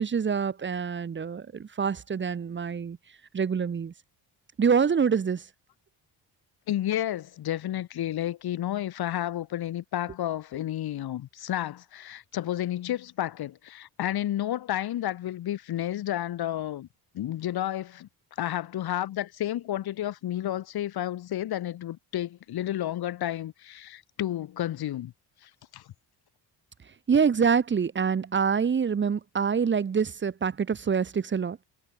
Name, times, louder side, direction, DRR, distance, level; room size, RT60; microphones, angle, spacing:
voice 1, 0.0-3.0 3.3-3.9 4.6-5.4 27.1-31.6, right 6 dB, 25° right, 1.5 m, -26 dB
voice 2, 6.7-16.9 17.1-18.1 18.4-25.1 25.7-25.8, left 12 dB, 60° left, 2.5 m, -31 dB
cardioid pair, 175°, 42 cm